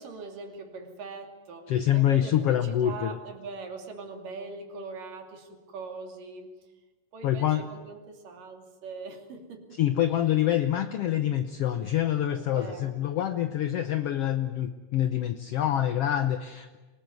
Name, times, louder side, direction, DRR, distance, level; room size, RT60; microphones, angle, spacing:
voice 1, 0.0-6.5 7.1-9.8 10.1-10.3 12.4-13.0, right 4 dB, 75° right, 4 dB, 4.3 m, -42 dB
voice 2, 1.7-3.2 7.2-7.6 9.8-16.8, left 11 dB, 75° left, 9 dB, 1.4 m, -26 dB
24.0 x 20.0 x 9.4 m, 1.2 s
omnidirectional pair, 3.9 m